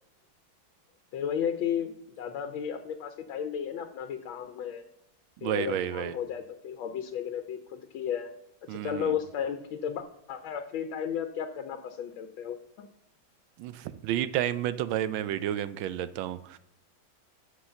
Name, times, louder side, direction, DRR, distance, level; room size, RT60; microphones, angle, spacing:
voice 1, 1.1-4.8 5.4-8.4 8.7-12.9, left 8 dB, 85° left, 7 dB, 1.5 m, -34 dB
voice 2, 5.4-6.2 8.7-9.1 13.6-16.6, right 11 dB, 85° right, 13 dB, 1.4 m, -31 dB
7.8 x 5.7 x 7.0 m, 0.76 s
omnidirectional pair, 2.1 m